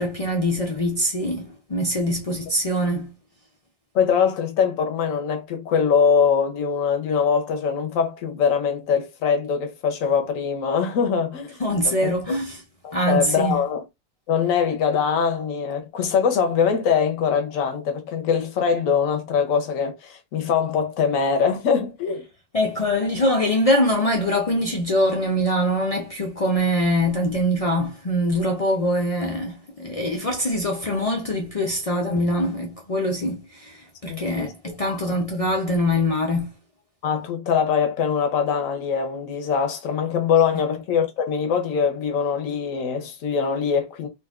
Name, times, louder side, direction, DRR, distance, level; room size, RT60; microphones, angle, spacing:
voice 1, 0.0-3.1 11.6-12.6 12.9-13.6 22.5-36.5 40.5-40.6, equal, 55° left, 0.4 m, -23 dB
voice 2, 3.9-11.6 11.8-12.4 12.8-13.8 14.3-22.2 34.1-34.5 34.8-35.2 37.0-44.1, left 6 dB, 85° left, 1.1 m, -23 dB
3.8 x 2.5 x 2.3 m
omnidirectional pair, 1.4 m